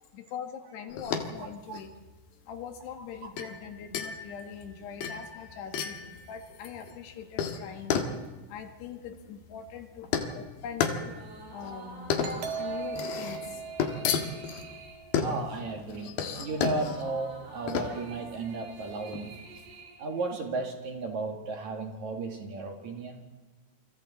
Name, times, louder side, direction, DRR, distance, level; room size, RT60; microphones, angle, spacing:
voice 1, 0.1-1.9 2.5-8.0 8.5-11.0 11.5-12.1 12.5-13.7 14.3-14.4, left 7 dB, 85° left, 6 dB, 3.9 m, -42 dB
sound 1, 0.9-19.7, left 6 dB, 65° left, 3.4 m, -34 dB
voice 2, 1.4-1.8 3.2-3.3 15.2-19.4 20.0-23.2, right 3 dB, 50° right, 3 dB, 2.9 m, -34 dB
sound 2, 11.0-20.7, right 3 dB, 90° right, 5.6 m, -49 dB
Doorbell, 12.2-15.6, right 6 dB, 70° right, 3.9 m, -39 dB
28.5 x 25.5 x 4.2 m, 1.2 s
omnidirectional pair, 4.7 m